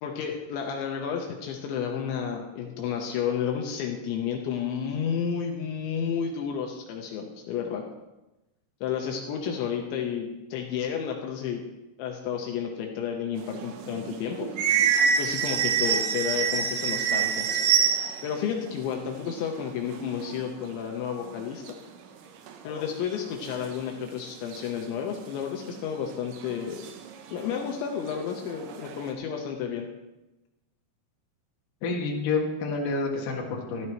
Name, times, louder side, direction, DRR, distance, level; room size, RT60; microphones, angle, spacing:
voice 1, 0.0-7.8 8.8-11.6 12.0-14.5 15.2-17.5 18.2-21.8 22.6-27.0 27.3-29.9, left 7 dB, 80° left, 1 dB, 3.2 m, -31 dB
sound 1, 13.4-18.4 18.7-18.8 19.0-20.4 20.8-20.9 21.2-21.7 22.5-22.6 23.1-24.0 24.5-24.6 25.7-25.9 26.3-27.7 28.1-29.1, right 7 dB, 75° right, 2.6 m, -27 dB
voice 2, 31.8-33.9, left 3 dB, 55° left, -1 dB, 2.9 m, -28 dB
15.0 x 12.5 x 3.1 m, 1.0 s
omnidirectional pair, 5.5 m